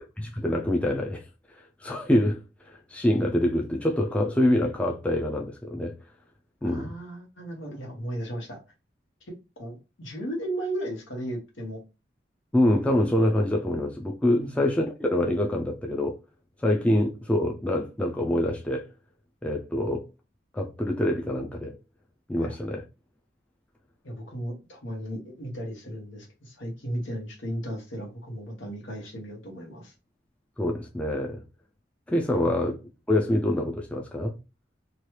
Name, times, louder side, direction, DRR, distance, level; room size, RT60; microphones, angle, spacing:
voice 1, 0.2-1.2 1.8-2.4 2.9-5.9 6.6-6.9 12.5-16.2 16.6-18.9 19.4-20.1 20.5-21.7 22.3-22.8 30.6-31.4 32.1-32.8 33.1-34.3, left 1 dB, 5° left, 0.3 m, -25 dB
voice 2, 6.6-8.6 9.6-11.8 14.4-14.6 22.4-22.6 24.0-29.9 32.4-32.5, right 1 dB, 85° left, 1.2 m, -35 dB
3.0 x 2.3 x 3.1 m
head